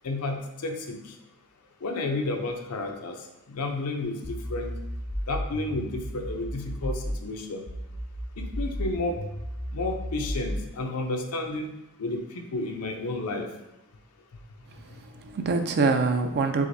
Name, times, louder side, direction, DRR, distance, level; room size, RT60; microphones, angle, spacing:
voice 1, 0.0-1.0 1.8-3.1 3.5-4.2 4.5-4.7 5.3-7.6 8.4-9.2 9.7-11.7 12.0-12.2 12.5-13.5, left 2 dB, 85° left, 4 dB, 0.6 m, -31 dB
sound 1, 4.2-7.3 7.7-10.7, equal, 25° left, 0.5 m, -33 dB
voice 2, 14.7-16.7, right 4 dB, 50° right, 7 dB, 0.4 m, -25 dB
4.9 x 3.5 x 2.6 m, 0.89 s
head